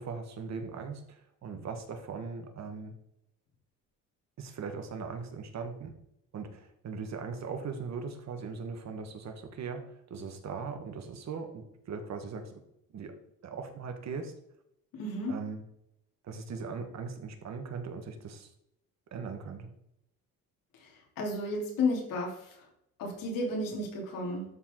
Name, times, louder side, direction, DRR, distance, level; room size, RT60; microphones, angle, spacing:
voice 1, 0.0-2.9 4.4-5.9 6.3-12.6 12.9-13.1 13.4-14.3 15.3-15.6 16.2-18.5 19.1-19.7, right 5 dB, 50° right, 6 dB, 1.7 m, -39 dB
voice 2, 15.0-15.3 20.8-20.9 21.2-22.5 23.0-24.5, left 2 dB, 75° left, -1 dB, 3.6 m, -32 dB
12.5 x 4.7 x 3.9 m, 0.76 s
cardioid pair, 115°, 34 cm